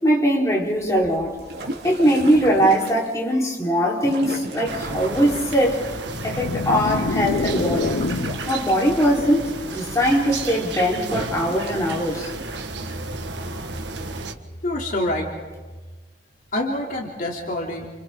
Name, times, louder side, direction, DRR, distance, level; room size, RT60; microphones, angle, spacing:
voice 1, 0.0-1.3 1.8-5.8 6.2-8.0 8.5-12.3, equal, 20° left, -3 dB, 4.3 m, -21 dB
sound 1, 0.6-3.2 4.0-5.5 7.0-9.3 11.3-12.7, right 1 dB, 65° right, 3.4 m, -35 dB
sound 2, 4.6-14.3, right 3 dB, 90° right, 1.7 m, -33 dB
sound 3, 6.1-8.6, left 3 dB, 70° left, 0.6 m, -26 dB
voice 2, 14.6-15.3 16.5-17.9, left 1 dB, 50° left, -1 dB, 3.3 m, -26 dB
29.5 x 29.5 x 3.9 m, 1.3 s
head